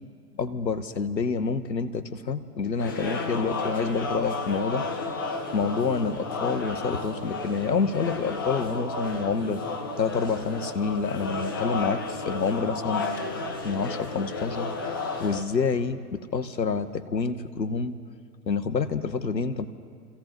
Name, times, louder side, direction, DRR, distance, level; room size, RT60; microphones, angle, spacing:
voice 1, 0.3-4.9 5.5-9.6 10.0-13.0 13.6-17.9 18.5-19.7, left 5 dB, 80° left, 10 dB, 1.1 m, -28 dB
sound 1, 2.8-15.4, left 3 dB, 15° left, 0.4 m, -32 dB
30.0 x 15.5 x 3.0 m, 2.1 s
figure-of-eight pair, 110°, 50 cm